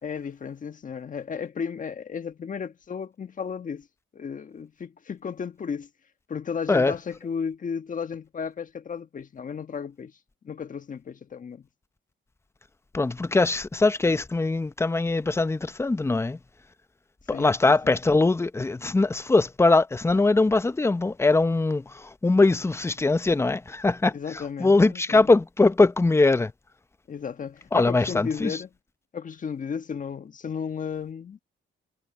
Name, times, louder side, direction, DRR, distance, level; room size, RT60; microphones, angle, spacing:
voice 1, 0.0-3.9 4.1-5.9 6.3-10.2 10.4-11.7 17.3-18.2 24.1-25.3 27.1-28.7 29.1-31.4, left 6 dB, 40° left, 1.5 m, -34 dB
voice 2, 12.9-16.4 17.3-24.2 24.6-26.5 27.7-28.6, left 3 dB, 15° left, 0.7 m, -21 dB
cardioid pair, 90°, 20 cm